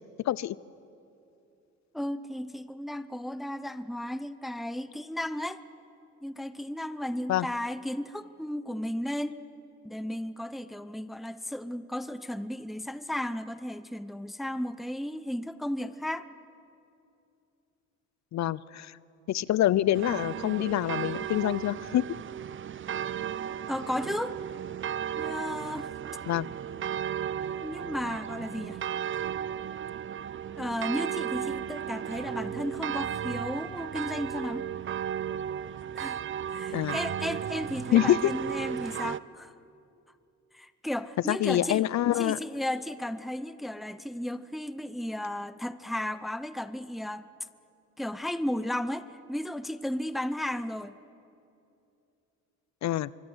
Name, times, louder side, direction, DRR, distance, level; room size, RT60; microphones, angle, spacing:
voice 1, 0.2-0.6 7.3-7.5 18.3-19.0 19.3-22.0 26.3-26.5 36.7-37.0 37.9-38.3 41.3-42.4 52.8-53.1, left 13 dB, 65° left, 21 dB, 0.7 m, -26 dB
voice 2, 1.9-5.6 6.2-9.4 9.8-16.3 23.7-24.4 25.2-25.9 27.6-28.8 30.6-34.7 36.0-36.2 36.5-39.5 40.5-41.9 42.2-47.3 48.0-50.9, left 1 dB, ahead, 13 dB, 0.8 m, -34 dB
sound 1, 19.9-39.2, right 9 dB, 40° right, 0.6 m, -35 dB
24.5 x 24.0 x 8.0 m, 2.7 s
cardioid pair, 90°, 30 cm